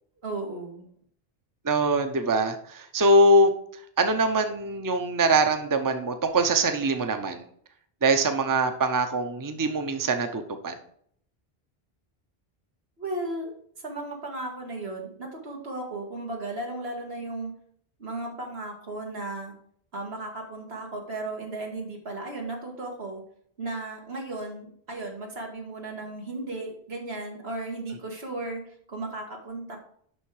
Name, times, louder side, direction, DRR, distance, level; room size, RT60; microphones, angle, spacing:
voice 1, 0.2-0.9 13.0-17.5 18.0-19.5 19.9-23.2 23.6-29.8, right 2 dB, 85° right, 0 dB, 2.2 m, -35 dB
voice 2, 1.6-3.5 4.0-7.4 8.0-10.7, right 2 dB, 20° right, 7 dB, 0.7 m, -23 dB
11.0 x 3.8 x 4.8 m, 0.63 s
omnidirectional pair, 1.0 m